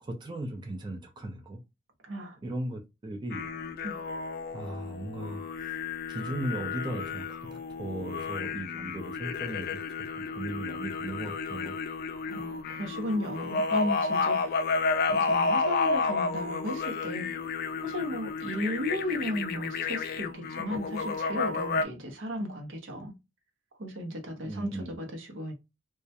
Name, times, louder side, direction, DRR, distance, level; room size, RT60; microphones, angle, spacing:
voice 1, 0.0-1.6 2.4-3.5 4.5-5.8 6.1-9.8 10.1-11.7 24.4-25.0, right 1 dB, 25° right, 0.4 m, -37 dB
voice 2, 2.0-2.4 3.8-3.9 12.3-14.6 15.1-17.3 17.8-23.1 23.8-25.5, equal, 80° right, 0.7 m, -35 dB
sound 1, 3.3-21.9, left 4 dB, 50° left, 0.3 m, -31 dB
2.3 x 2.1 x 2.7 m
head